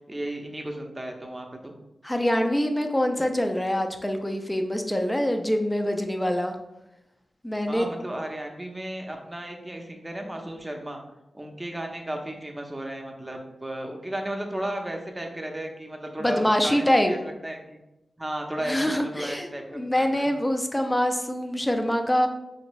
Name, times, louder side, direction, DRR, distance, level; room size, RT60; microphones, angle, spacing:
voice 1, 0.1-1.7 7.7-11.0 11.3-17.8 18.2-20.3, right 1 dB, 20° right, 2 dB, 0.7 m, -34 dB
voice 2, 2.0-6.5 7.4-7.9 16.2-17.1 18.6-22.3, equal, 10° left, 4 dB, 0.5 m, -25 dB
4.8 x 2.6 x 3.1 m, 0.92 s
cardioid pair, 60°, 0 cm